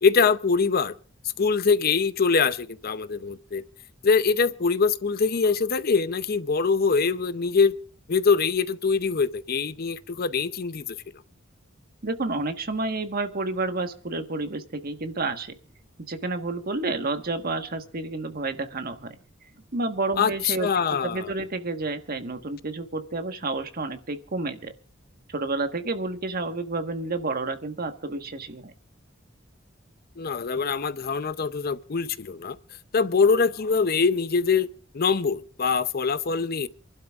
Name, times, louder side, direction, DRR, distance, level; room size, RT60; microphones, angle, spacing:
voice 1, 0.0-1.0 1.4-3.6 4.0-7.7 8.1-11.0 20.2-21.3 30.2-32.6 32.9-34.7 34.9-36.7, left 5 dB, 50° left, 0.6 m, -23 dB
voice 2, 12.0-15.5 16.1-19.1 19.7-20.7 21.0-24.7 25.3-28.7, right 3 dB, 50° right, 1.4 m, -30 dB
28.0 x 11.5 x 2.4 m
head